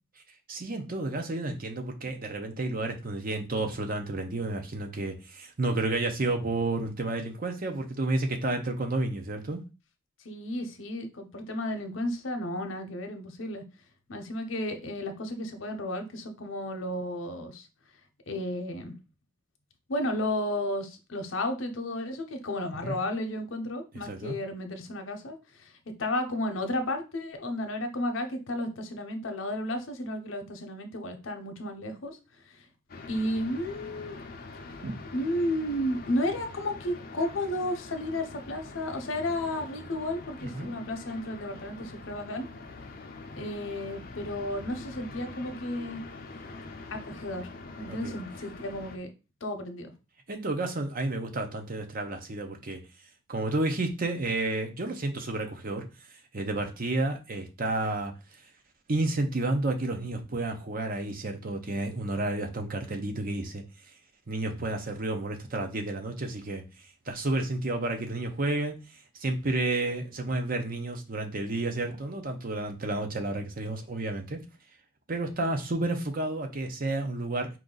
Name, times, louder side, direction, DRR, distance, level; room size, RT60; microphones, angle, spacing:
voice 1, 0.5-9.6 22.8-23.0 24.0-24.4 34.8-35.0 40.4-40.7 47.9-48.2 50.3-52.8 53.3-55.9 56.3-58.4 58.9-63.6 64.3-66.6 67.1-74.4 75.1-77.5, right 2 dB, 50° right, 5 dB, 0.8 m, -31 dB
voice 2, 10.2-13.6 14.1-17.7 18.3-18.9 19.9-25.7 26.0-32.2 33.1-34.2 35.1-42.5 43.4-46.0 46.9-49.1 49.4-49.9, left 1 dB, 80° left, 6 dB, 0.8 m, -33 dB
sound 1, 32.9-49.0, left 3 dB, 50° left, 0.6 m, -44 dB
4.6 x 2.7 x 3.9 m, 0.29 s
head